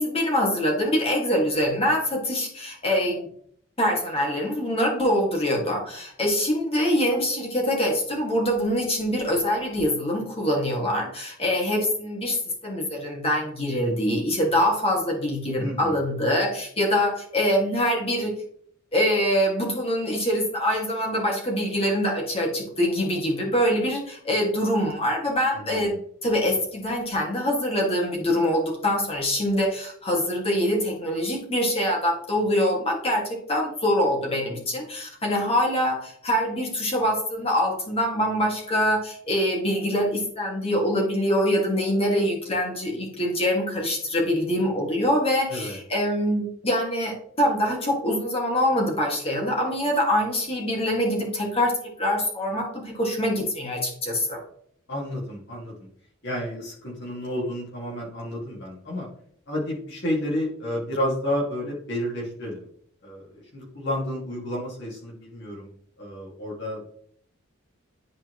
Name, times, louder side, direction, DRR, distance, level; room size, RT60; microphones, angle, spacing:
voice 1, 0.0-3.3 3.8-12.4 12.6-18.4 18.9-25.9 26.2-54.4, equal, 30° left, -2 dB, 2.1 m, -24 dB
voice 2, 15.6-16.0 25.5-25.8 45.5-45.8 54.9-55.9 56.2-59.1 59.5-62.6 63.0-65.7 66.0-66.9, left 1 dB, 55° left, -3 dB, 2.2 m, -31 dB
11.0 x 4.3 x 3.1 m, 0.63 s
head